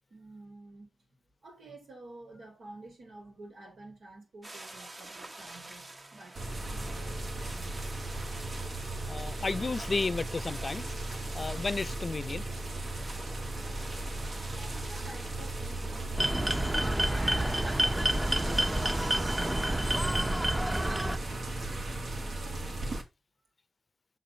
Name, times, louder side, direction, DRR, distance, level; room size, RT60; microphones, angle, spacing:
voice 1, 0.1-0.9 1.4-7.8 14.5-16.9 17.3-22.7, right 2 dB, 90° right, 3.9 m, -51 dB
sound 1, 4.4-17.1, right 2 dB, 50° right, 1.5 m, -48 dB
sound 2, 6.4-23.0, right 2 dB, 70° right, 2.0 m, -36 dB
voice 2, 9.1-11.0 11.3-12.4, left 3 dB, 50° left, 0.5 m, -33 dB
sound 3, 16.2-21.2, right 1 dB, 15° right, 0.7 m, -28 dB
6.7 x 4.4 x 6.1 m
cardioid pair, 50°, 0 cm